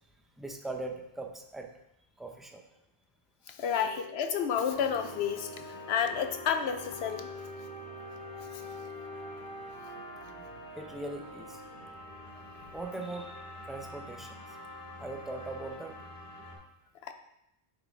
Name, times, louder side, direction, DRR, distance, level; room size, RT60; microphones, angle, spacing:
voice 1, 0.4-1.7 2.2-2.6 10.4-10.5 10.7-11.6 12.7-14.6 15.0-15.9, right 2 dB, ahead, 3 dB, 0.5 m, -40 dB
voice 2, 3.5-7.3 17.0-17.1, left 7 dB, 85° left, 7 dB, 0.9 m, -31 dB
Wind instrument woodwind instrument, 3.7-9.4, left 2 dB, 35° right, 1.0 m, -48 dB
sound 1, 4.7-16.6, equal, 50° left, 2.5 m, -45 dB
8.9 x 4.2 x 3.5 m, 0.84 s
omnidirectional pair, 1.0 m